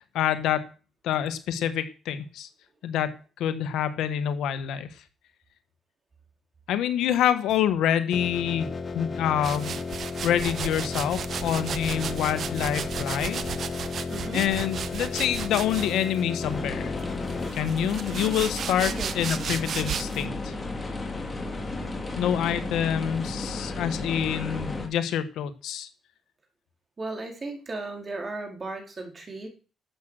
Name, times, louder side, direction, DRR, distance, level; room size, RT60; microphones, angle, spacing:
voice 1, 0.1-0.7 1.0-2.5 2.8-4.9 6.7-8.7 8.9-9.8 10.2-13.4 14.3-16.9 17.5-20.5 22.2-25.9, left 10 dB, 85° left, 10 dB, 1.5 m, -27 dB
sound 1, 8.1-17.5, left 4 dB, 40° left, 1.7 m, -34 dB
sound 2, 9.4-16.2 17.0-20.2, right 7 dB, 60° right, 1.1 m, -35 dB
voice 2, 14.1-14.4 18.9-19.4 27.0-29.5, right 2 dB, 35° right, 3 dB, 4.5 m, -36 dB
sound 3, 16.4-24.9, left 2 dB, 20° left, 3.4 m, -33 dB
12.5 x 8.0 x 6.5 m, 0.37 s
cardioid pair, 90°, 0 cm